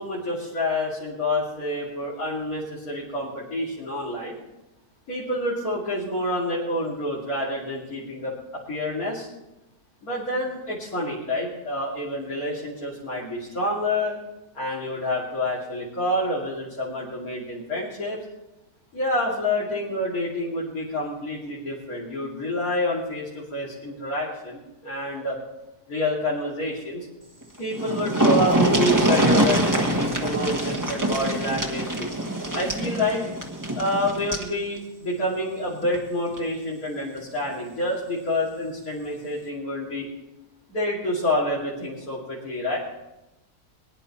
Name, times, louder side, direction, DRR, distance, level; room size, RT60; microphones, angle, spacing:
voice 1, 0.0-4.4 5.1-9.3 10.0-14.1 14.5-18.2 18.9-25.4 25.9-27.1 27.6-32.1 32.5-33.2 33.7-40.1 40.7-42.8, left 1 dB, 70° left, -7 dB, 3.3 m, -28 dB
sound 1, 27.4-27.5 27.7-34.5 35.8-36.0 36.4-36.5, right 1 dB, 15° right, 1.4 m, -24 dB
21.0 x 10.5 x 4.3 m, 0.99 s
omnidirectional pair, 1.6 m